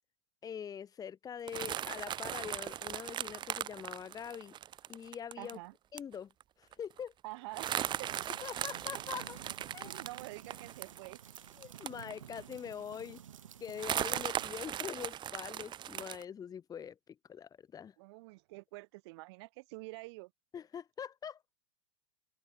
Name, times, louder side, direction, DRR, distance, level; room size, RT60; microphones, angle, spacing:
voice 1, 0.4-4.5 4.9-5.6 5.9-6.3 6.6-7.1 8.3-9.4 9.7-10.1 11.6-13.2 13.6-17.9 20.5-21.4, left 8 dB, 25° left, 3.5 m, -44 dB
sound 1, 1.5-5.5 6.0-6.1 6.4-6.5 6.7-7.0 7.5-12.5 13.0-13.1 13.8-16.2, right 11 dB, 30° right, 1.4 m, -38 dB
voice 2, 5.4-5.7 7.2-8.1 9.9-11.2 18.0-20.3, right 24 dB, 60° right, 5.0 m, -47 dB
sound 2, 7.8-14.5, right 9 dB, 85° right, 2.0 m, -52 dB
open air
hypercardioid pair, 120°, 16 cm